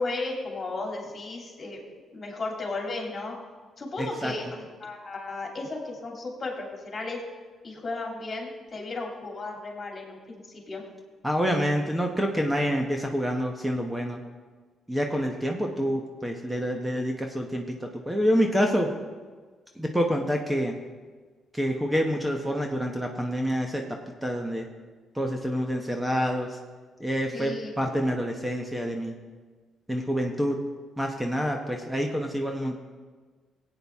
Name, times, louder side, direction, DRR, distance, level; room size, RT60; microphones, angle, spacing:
voice 1, 0.0-1.8 2.1-3.3 3.8-7.2 7.6-10.8 27.3-27.8, left 3 dB, 35° left, 0 dB, 2.9 m, -34 dB
voice 2, 4.0-4.3 11.2-14.2 14.9-18.9 19.7-20.7 21.5-23.9 24.2-24.7 25.1-26.6 27.0-29.2 29.9-30.7 31.0-32.8, equal, 5° right, 2 dB, 1.1 m, -27 dB
16.5 x 8.8 x 3.6 m, 1.4 s
cardioid pair, 90°, 0 cm